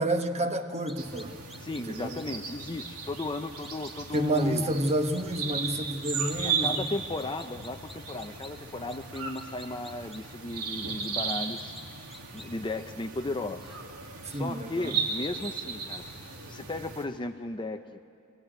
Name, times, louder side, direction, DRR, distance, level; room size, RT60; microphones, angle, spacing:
voice 1, 0.0-1.4 1.7-2.2 4.1-6.9 14.2-15.0, right 1 dB, 30° right, 6 dB, 1.1 m, -29 dB
sound 1, 0.9-1.8 2.2-2.3 3.6-4.4 4.8-5.2 6.0-6.9 7.2-8.5 8.9-10.2 11.0-11.8 12.1-12.5, left 1 dB, ahead, 1.3 m, -48 dB
sound 2, 1.0-17.1, right 5 dB, 90° right, 2.3 m, -36 dB
voice 2, 1.6-4.7 6.4-11.7 12.3-13.8 14.3-16.0 16.5-18.0, left 2 dB, 20° left, 7 dB, 0.5 m, -35 dB
24.5 x 17.5 x 9.0 m, 2.4 s
head